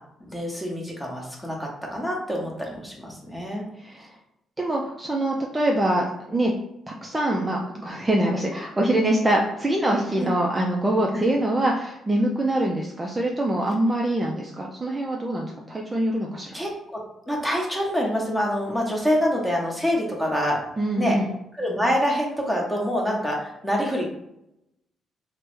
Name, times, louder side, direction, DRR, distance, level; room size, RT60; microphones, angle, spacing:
voice 1, 0.3-3.6 10.2-10.3 11.1-11.2 16.5-20.6 21.0-21.2 21.6-24.1, equal, 5° left, -2 dB, 0.9 m, -26 dB
voice 2, 3.8-4.2 4.6-6.5 6.9-16.6 20.8-21.3, right 1 dB, 20° right, -1 dB, 0.4 m, -24 dB
3.3 x 2.0 x 3.0 m, 0.83 s
cardioid pair, 90°, 0 cm